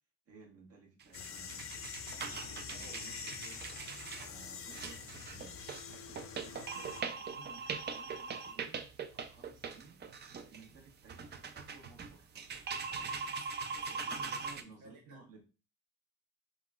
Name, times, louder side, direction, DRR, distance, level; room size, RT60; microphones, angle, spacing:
voice 1, 0.3-3.4 4.1-5.6 6.2-6.6 7.0-8.8 9.1-10.0 10.4-12.3 12.9-13.2 13.9-15.4, right 4 dB, 50° right, 0 dB, 1.3 m, -57 dB
sound 1, 1.0-14.6, right 5 dB, 35° right, 0.4 m, -42 dB
sound 2, 1.1-7.0, left 7 dB, 50° left, 0.4 m, -46 dB
voice 2, 2.7-3.5 6.5-7.0 12.9-15.2, right 1 dB, 75° right, -1 dB, 1.4 m, -59 dB
3.7 x 2.2 x 2.3 m, 0.32 s
cardioid pair, 90°, 30 cm